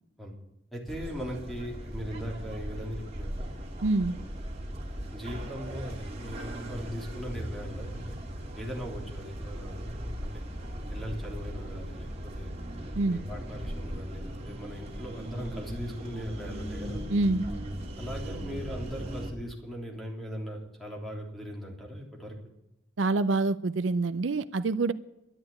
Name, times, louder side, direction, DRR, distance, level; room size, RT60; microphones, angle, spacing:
voice 1, 0.7-3.5 5.1-8.2 8.5-9.9 10.2-10.4 10.8-12.5 13.0-17.0 18.0-22.4, equal, ahead, -1 dB, 3.4 m, -39 dB
sound 1, 0.9-19.3, equal, 35° right, 2.6 m, -38 dB
voice 2, 3.8-4.1 12.9-13.2 17.1-17.4 23.0-24.9, right 3 dB, 70° right, 14 dB, 0.5 m, -26 dB
12.0 x 11.0 x 8.5 m, 0.95 s
head